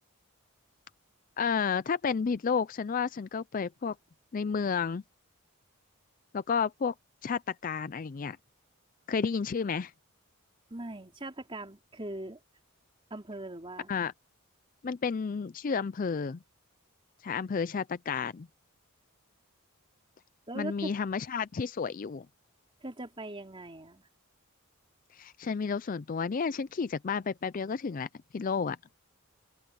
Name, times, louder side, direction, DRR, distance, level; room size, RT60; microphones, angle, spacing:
voice 1, 1.4-4.0 4.3-5.0 6.3-6.9 7.2-8.4 9.1-9.9 13.9-14.1 14.8-16.4 17.2-18.5 20.5-22.3 25.1-28.1 28.3-28.8, left 5 dB, 40° left, 0.4 m, -31 dB
voice 2, 10.7-12.4 13.1-13.9 20.5-20.9 22.8-24.1, right 1 dB, 25° right, 3.9 m, -40 dB
open air
head